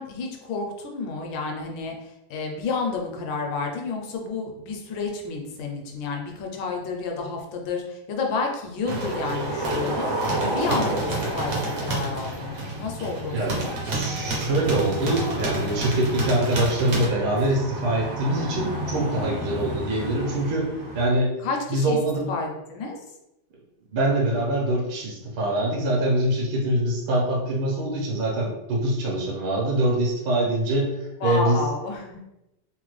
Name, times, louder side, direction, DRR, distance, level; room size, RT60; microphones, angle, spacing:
voice 1, 0.0-13.9 21.4-22.0 22.3-23.0 31.2-32.2, left 4 dB, 75° left, 2 dB, 1.3 m, -30 dB
sound 1, 8.9-21.1, right 2 dB, 60° right, 1.0 m, -29 dB
voice 2, 13.9-20.7 20.9-21.3 21.7-22.3 23.9-31.6, right 1 dB, 75° right, -3 dB, 1.6 m, -24 dB
3.7 x 2.1 x 3.1 m, 0.93 s
omnidirectional pair, 2.2 m